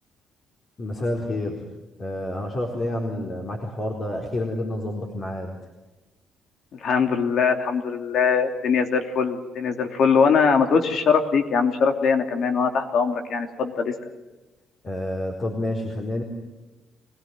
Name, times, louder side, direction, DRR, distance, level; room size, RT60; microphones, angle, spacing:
voice 1, 0.8-1.7 2.0-5.5 14.8-16.2, left 1 dB, 40° left, 0 dB, 4.2 m, -29 dB
voice 2, 6.7-13.9, left 5 dB, 65° left, 5 dB, 2.9 m, -21 dB
24.0 x 18.0 x 9.5 m, 1.1 s
cardioid pair, 90°, 0 cm